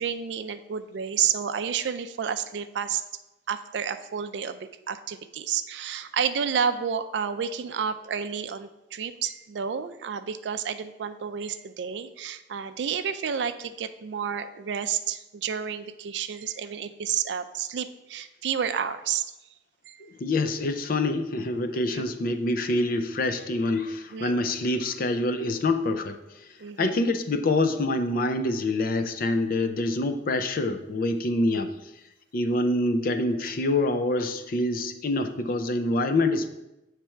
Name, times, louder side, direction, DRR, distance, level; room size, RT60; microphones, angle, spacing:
voice 1, 0.0-3.0 3.5-19.3 19.9-20.0 21.7-22.0 24.1-24.4 26.6-27.0, right 7 dB, 80° right, 11 dB, 0.4 m, -30 dB
voice 2, 20.0-26.5 26.8-31.7 32.3-36.5, left 2 dB, 55° left, 8 dB, 0.5 m, -26 dB
7.4 x 3.3 x 4.4 m, 0.93 s
head